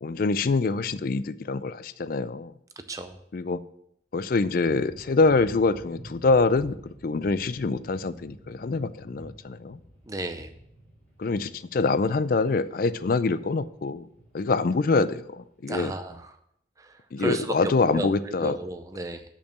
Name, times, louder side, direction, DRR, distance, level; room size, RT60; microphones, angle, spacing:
voice 1, 0.0-2.5 3.3-3.6 4.1-9.8 11.2-14.1 14.3-15.9 17.1-18.6, left 3 dB, 50° left, 14 dB, 0.4 m, -25 dB
sound 1, 4.7-16.2, right 1 dB, 15° left, 2.6 m, -50 dB
voice 2, 10.1-10.5 15.7-16.3 16.8-18.1 18.4-19.2, right 2 dB, 20° right, 9 dB, 0.5 m, -33 dB
6.5 x 5.7 x 7.3 m, 0.74 s
head